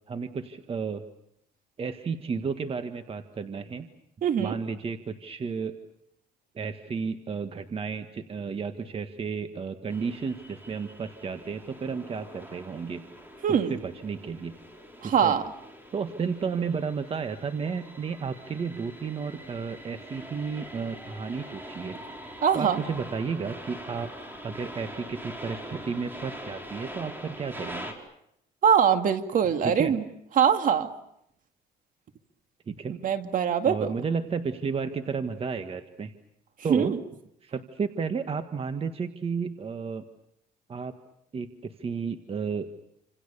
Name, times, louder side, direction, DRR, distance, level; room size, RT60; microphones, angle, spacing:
voice 1, 0.1-1.0 1.8-3.9 4.4-5.7 6.5-13.0 13.5-14.5 15.0-15.4 15.9-22.0 22.5-24.1 24.4-27.9 29.6-29.9 32.7-33.0 33.6-36.1 36.6-36.9 37.4-40.0 40.7-40.9 41.3-42.7, right 5 dB, 35° right, 9 dB, 1.6 m, -32 dB
voice 2, 4.2-4.6 13.4-13.7 15.0-15.4 22.4-22.8 28.6-30.0 30.4-30.9 33.0-33.9 36.7-37.0, right 8 dB, 50° right, 8 dB, 2.2 m, -23 dB
sound 1, 9.9-27.9, equal, 10° right, 4.7 m, -43 dB
28.5 x 27.0 x 6.8 m, 0.76 s
cardioid pair, 110°, 17 cm